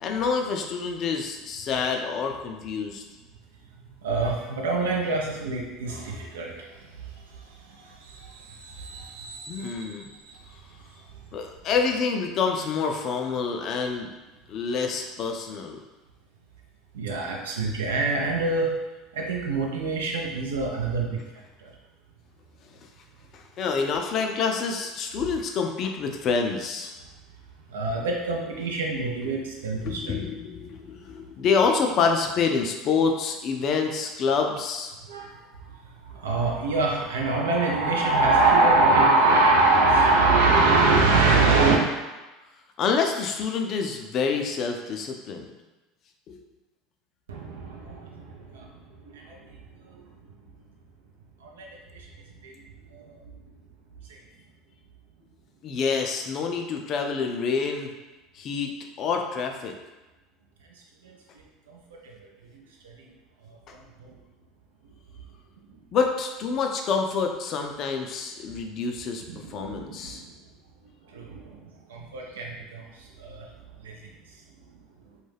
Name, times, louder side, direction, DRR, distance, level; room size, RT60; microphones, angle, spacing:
voice 1, 0.0-3.0 9.5-10.1 11.3-14.1 14.5-15.8 23.3-26.9 29.8-34.9 42.8-45.5 46.3-46.4 55.6-57.9 58.3-58.7 59.0-59.7 63.7-63.8 65.9-69.2 69.5-70.2, left 5 dB, 50° left, 3 dB, 0.4 m, -27 dB
voice 2, 4.0-6.5 8.6-9.5 16.9-18.7 19.2-21.2 27.7-30.1 35.1-35.3 36.2-41.8 47.3-48.0 51.6-51.7 52.4-52.5 69.3-70.2 71.1-71.4 71.9-72.8 73.2-73.4 73.8-73.9, right 3 dB, 80° right, 0 dB, 0.4 m, -23 dB
2.3 x 2.1 x 3.2 m, 1.1 s
hypercardioid pair, 75°, 0 cm